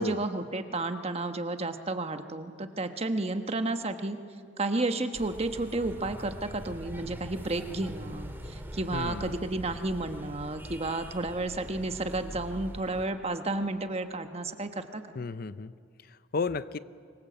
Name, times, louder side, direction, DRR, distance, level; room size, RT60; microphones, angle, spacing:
voice 1, 0.0-4.2 4.6-15.2, right 2 dB, 30° right, 8 dB, 1.2 m, -32 dB
sound 1, 5.1-13.1, equal, 10° right, 1.9 m, -43 dB
voice 2, 8.9-9.3 15.2-15.7 16.1-16.8, left 4 dB, 50° left, 15 dB, 0.5 m, -33 dB
25.5 x 22.5 x 7.9 m, 2.3 s
head